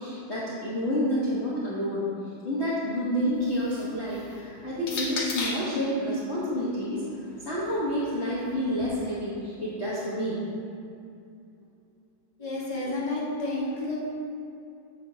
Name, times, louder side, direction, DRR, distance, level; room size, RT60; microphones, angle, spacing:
voice 1, 0.0-2.1 2.4-7.0 7.4-10.4, equal, 40° left, -9 dB, 1.2 m, -29 dB
sound 1, 3.3-5.8 6.7-8.8, left 3 dB, 70° left, 1.6 m, -38 dB
voice 2, 12.4-14.0, left 2 dB, 20° left, -7 dB, 1.3 m, -30 dB
8.6 x 7.1 x 2.7 m, 2.5 s
omnidirectional pair, 2.1 m